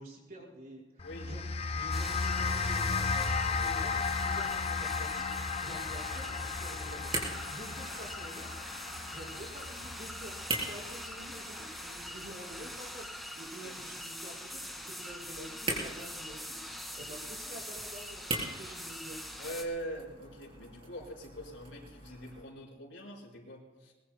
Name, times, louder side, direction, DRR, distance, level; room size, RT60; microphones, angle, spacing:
voice 1, 0.0-1.4 1.7-5.3 5.6-7.1 7.5-8.5 9.1-13.1 13.4-16.6 16.9-19.2, right 1 dB, 50° right, -5 dB, 5.5 m, -48 dB
sound 1, 1.0-11.5, left 5 dB, 30° left, 0.5 m, -34 dB
sound 2, 1.9-19.6, equal, ahead, 1.8 m, -43 dB
sound 3, 3.5-22.4, right 2 dB, 30° right, 3.9 m, -44 dB
voice 2, 19.4-23.9, right 1 dB, 85° left, -2 dB, 4.7 m, -43 dB
22.0 x 21.5 x 2.3 m, 1.2 s
head